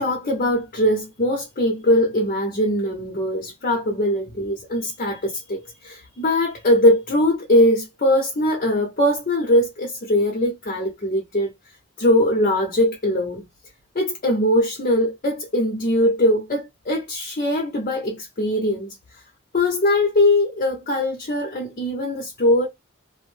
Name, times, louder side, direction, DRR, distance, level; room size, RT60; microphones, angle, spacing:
voice 1, 0.0-11.5 12.0-13.4 13.9-18.9 19.5-22.7, left 1 dB, 40° left, 0.7 m, -21 dB
2.6 x 2.0 x 3.2 m
head